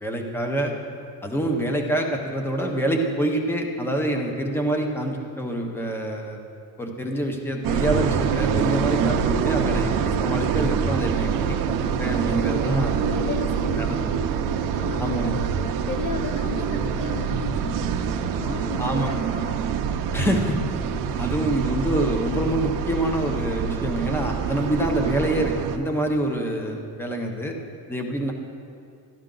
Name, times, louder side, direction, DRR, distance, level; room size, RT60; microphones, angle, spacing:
voice 1, 0.0-0.7 1.2-6.4 6.8-11.6 11.8-12.9 13.8-13.9 15.0-15.4 18.8-19.1 20.1-20.6 21.2-27.5 27.9-28.3, right 1 dB, 5° left, 3 dB, 0.7 m, -26 dB
sound 1, 7.6-25.8, right 7 dB, 50° right, 0.6 m, -25 dB
voice 2, 12.6-15.5 15.9-19.7 26.4-26.9, left 5 dB, 40° left, 5 dB, 0.4 m, -35 dB
12.0 x 12.0 x 3.8 m, 2.4 s
cardioid pair, 180°, 42 cm